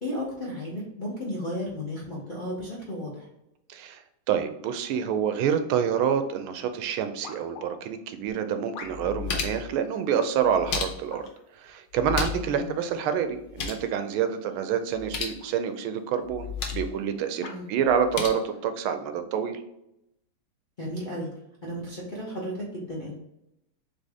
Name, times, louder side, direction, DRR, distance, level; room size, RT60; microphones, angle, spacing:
voice 1, 0.0-3.3 12.5-12.8 17.4-17.7 20.8-21.3 21.6-23.1, equal, 40° left, -5 dB, 0.7 m, -34 dB
voice 2, 3.7-4.0 4.3-11.3 11.6-19.6, right 8 dB, 85° right, 8 dB, 1.4 m, -27 dB
sound 1, 7.2-7.7 8.7-9.3 10.1-10.3 11.3-11.7 12.5-12.7 14.6-14.8 15.4-15.6 16.4-16.5 17.4-17.7 18.5-18.6, left 5 dB, 85° left, 1.6 m, -45 dB
sound 2, 8.3-8.4 8.8-9.7 10.4-11.3 11.9-12.6 12.8-12.9 13.3-13.9 14.9-15.4 16.3-16.9 17.8-18.3, left 6 dB, 65° left, 1.4 m, -33 dB
4.1 x 3.3 x 3.5 m, 0.84 s
omnidirectional pair, 2.3 m